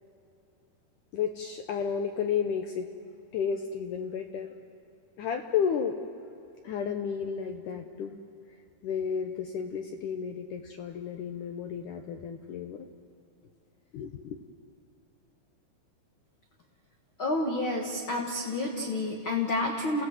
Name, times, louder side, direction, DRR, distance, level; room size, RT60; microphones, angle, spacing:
voice 1, 1.1-2.9 3.3-4.5 5.2-6.0 6.6-8.2 8.8-12.9 13.9-14.4, left 7 dB, 80° left, 5 dB, 1.8 m, -32 dB
voice 2, 17.2-20.0, left 2 dB, 60° left, 1 dB, 1.3 m, -29 dB
29.5 x 17.5 x 7.9 m, 2.8 s
omnidirectional pair, 4.8 m